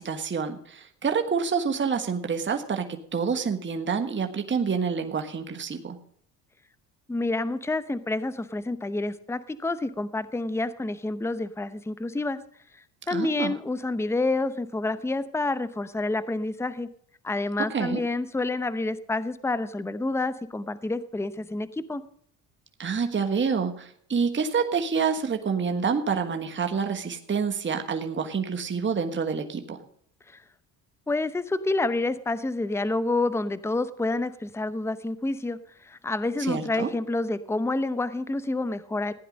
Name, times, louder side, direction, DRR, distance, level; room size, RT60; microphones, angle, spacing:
voice 1, 0.0-6.0 13.1-13.5 17.6-18.0 22.8-29.8 36.4-36.9, right 5 dB, 25° right, 5 dB, 1.4 m, -27 dB
voice 2, 7.1-12.4 13.1-16.9 17.2-22.0 30.3-30.4 31.1-39.1, left 2 dB, 5° left, 16 dB, 0.8 m, -28 dB
15.5 x 10.0 x 5.2 m, 0.64 s
supercardioid pair, 80°, 46 cm